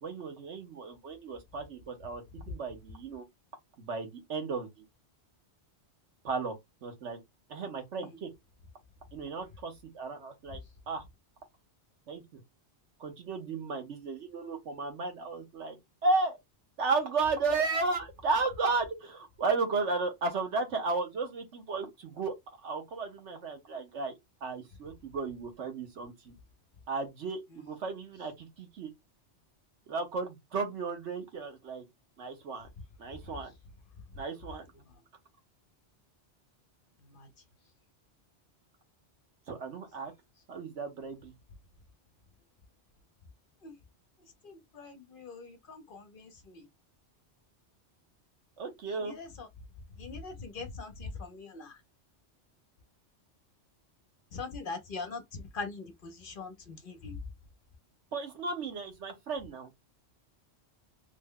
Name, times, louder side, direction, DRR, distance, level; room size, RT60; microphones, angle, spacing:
voice 1, 0.0-3.2 3.8-4.8 6.2-7.2 7.5-8.3 9.1-10.6 10.9-11.0 12.1-12.4 13.0-15.8 16.0-16.4 16.8-22.3 22.6-24.1 24.4-26.3 26.9-28.9 29.9-31.8 32.2-32.7 33.0-33.5 34.1-34.7 39.5-40.1 40.5-41.3 48.6-49.2 58.1-59.7, right 3 dB, 80° right, 1.3 m, -34 dB
voice 2, 44.4-46.7 49.0-49.5 50.0-51.7 54.3-57.2, left 4 dB, 55° left, 0.8 m, -42 dB
3.2 x 2.1 x 3.6 m
omnidirectional pair, 1.2 m